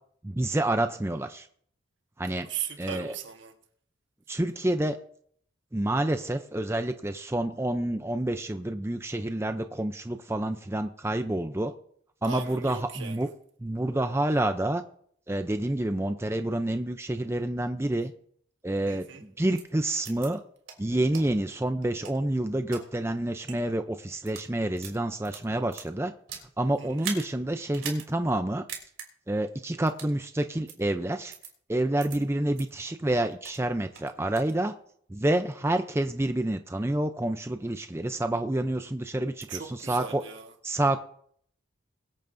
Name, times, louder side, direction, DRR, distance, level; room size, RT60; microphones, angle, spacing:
voice 1, 0.2-1.5 2.2-2.5 2.8-3.1 4.3-5.0 5.7-11.7 12.2-13.3 13.6-14.8 15.3-18.1 18.6-20.4 20.8-26.1 26.6-28.6 29.3-31.3 31.7-34.7 35.1-40.2 40.6-41.0, right 1 dB, 15° right, 0.5 m, -28 dB
voice 2, 2.4-3.6 12.2-13.3 18.9-19.2 26.8-27.0 39.5-40.5, right 7 dB, 70° right, 1.3 m, -38 dB
sound 1, 19.6-19.7 20.0-20.3 20.7-20.8 21.1-21.2 21.8-22.8 23.4-23.6 24.1-24.5 24.8-26.5 27.0-27.3 27.7-28.1 28.4-28.5 28.7-29.1 29.9-30.1 30.7-30.8 31.3-31.5 32.0-32.2 32.6-32.7 33.1-33.6 34.0-34.5, right 7 dB, 85° right, 3.1 m, -40 dB
22.0 x 8.9 x 2.6 m
head